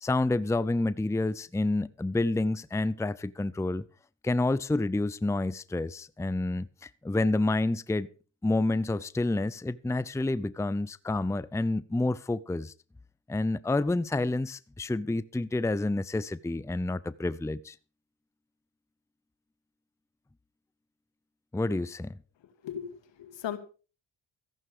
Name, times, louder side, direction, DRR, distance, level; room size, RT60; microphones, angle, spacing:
voice 1, 0.0-3.8 4.2-8.1 8.4-12.7 13.3-17.8 21.5-22.1, left 2 dB, 5° left, 0.6 m, -29 dB
voice 2, 22.6-23.6, left 9 dB, 75° left, 2.5 m, -37 dB
14.5 x 11.0 x 5.1 m
supercardioid pair, 60°, 44 cm